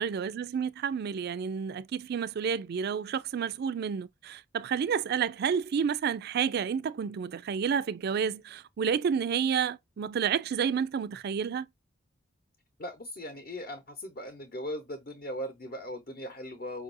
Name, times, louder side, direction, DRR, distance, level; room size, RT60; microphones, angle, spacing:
voice 1, 0.0-11.7, right 7 dB, 55° right, 0.3 m, -30 dB
voice 2, 12.8-16.8, equal, 50° left, 0.9 m, -39 dB
5.3 x 2.6 x 2.5 m
head